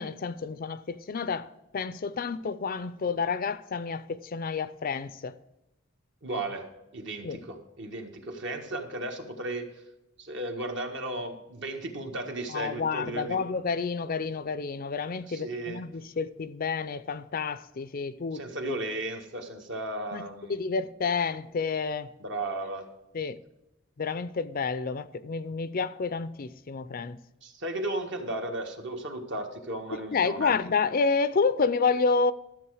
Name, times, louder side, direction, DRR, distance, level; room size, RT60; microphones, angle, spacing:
voice 1, 0.0-1.5 1.7-5.3 7.2-7.4 12.5-18.8 20.1-20.2 20.5-22.1 23.1-23.4 24.0-27.2 29.9-32.3, left 5 dB, 45° left, 0.5 m, -29 dB
voice 2, 6.2-6.7 6.9-9.7 10.2-13.4 15.3-15.8 18.3-20.6 22.2-22.9 27.4-30.6, right 2 dB, 60° right, 1.6 m, -35 dB
13.0 x 7.6 x 4.8 m
head